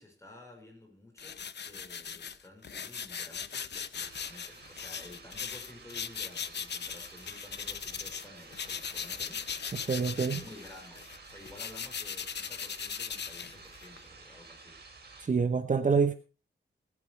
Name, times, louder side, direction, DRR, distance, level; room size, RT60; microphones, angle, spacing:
voice 1, 0.0-9.4 10.1-14.8, left 2 dB, 15° left, 0 dB, 5.6 m, -52 dB
sound 1, 1.2-8.3 8.5-14.0, left 7 dB, 65° left, 0.9 m, -39 dB
sound 2, 3.9-15.3, right 4 dB, 55° right, 4.6 m, -52 dB
voice 2, 9.9-10.4 15.2-16.2, right 5 dB, 40° right, 9 dB, 1.0 m, -26 dB
19.5 x 9.8 x 4.7 m, 0.34 s
wide cardioid pair, 170°, 19 cm